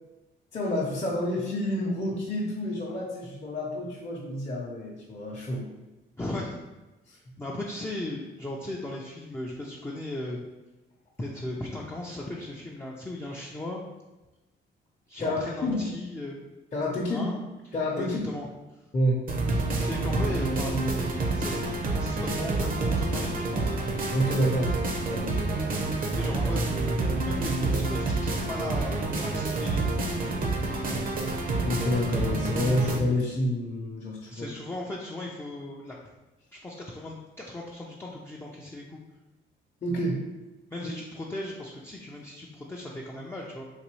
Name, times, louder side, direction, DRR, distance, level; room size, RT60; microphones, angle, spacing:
voice 1, 0.5-5.7 7.1-7.2 15.2-15.8 16.7-17.3 17.7-18.2 18.9-19.2 24.1-24.7 25.1-25.4 31.6-34.5 39.8-40.2, left 1 dB, 35° left, -5 dB, 0.8 m, -28 dB
voice 2, 6.2-6.6 7.1-10.4 11.2-13.8 15.1-16.5 17.1-17.4 18.0-18.5 19.8-23.7 26.2-31.0 34.3-36.0 36.5-39.0 40.7-43.6, left 1 dB, 10° left, -3 dB, 0.5 m, -37 dB
sound 1, 19.3-33.0, right 2 dB, 45° right, 0.7 m, -28 dB
4.0 x 2.6 x 3.0 m, 1.1 s
cardioid pair, 90°, 20 cm